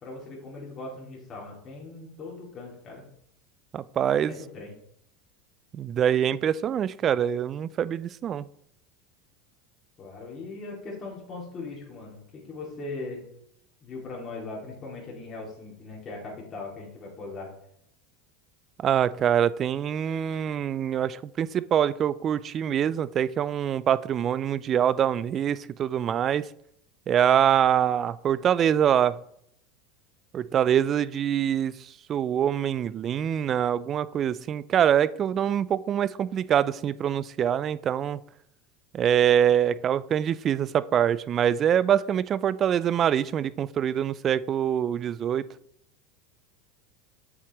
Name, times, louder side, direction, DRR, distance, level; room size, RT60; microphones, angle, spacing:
voice 1, 0.0-3.0 4.1-4.8 10.0-13.3 13.8-17.5, left 3 dB, 35° left, -3 dB, 2.4 m, -39 dB
voice 2, 3.7-4.3 5.7-8.4 18.8-26.5 27.1-29.2 30.3-31.7 32.1-38.2 38.9-45.5, right 9 dB, 35° right, 18 dB, 0.3 m, -24 dB
7.8 x 5.9 x 3.0 m, 0.73 s
supercardioid pair, 115°, 0 cm